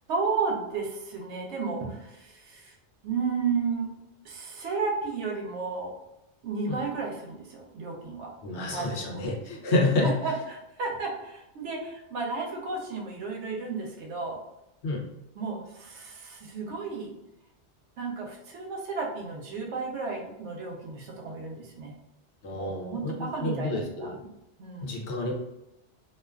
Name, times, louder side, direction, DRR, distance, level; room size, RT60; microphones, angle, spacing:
voice 1, 0.1-2.7 3.0-3.9 4.2-5.9 6.4-8.3 8.7-9.3 10.0-14.4 15.4-17.1 18.0-21.9 22.5-24.3 24.6-25.0, right 4 dB, 85° right, 0 dB, 0.9 m, -33 dB
voice 2, 8.4-10.1 14.8-15.0 22.4-24.2 24.8-25.3, left 2 dB, 75° left, 0 dB, 0.9 m, -29 dB
2.4 x 2.3 x 2.2 m, 0.87 s
omnidirectional pair, 1.2 m